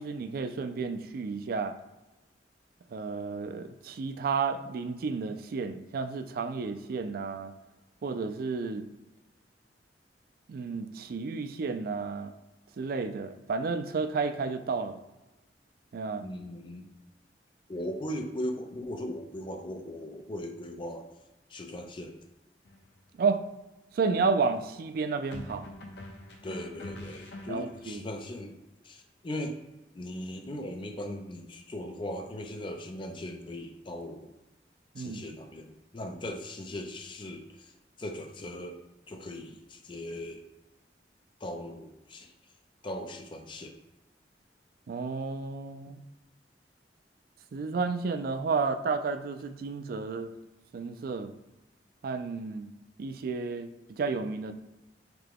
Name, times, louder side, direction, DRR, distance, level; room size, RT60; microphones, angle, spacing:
voice 1, 0.0-1.8 2.9-7.5 8.0-8.8 10.5-12.3 12.8-15.0 15.9-16.3 23.2-23.4 23.9-25.7 27.5-28.0 35.0-35.2 44.9-46.0 47.5-50.3 50.7-51.3 52.0-52.7 53.0-54.5, right 4 dB, 55° right, 9 dB, 0.3 m, -31 dB
voice 2, 16.2-16.9 17.7-21.1 21.5-22.1 26.4-28.6 28.8-29.6 30.0-34.3 35.0-37.7 38.0-38.8 39.1-40.4 41.4-42.3 42.8-43.7, left 1 dB, 30° left, 4 dB, 0.5 m, -38 dB
sound 1, 22.7-22.9 25.3-28.0, left 1 dB, 70° left, 0.7 m, -44 dB
5.8 x 2.2 x 3.4 m, 1.0 s
head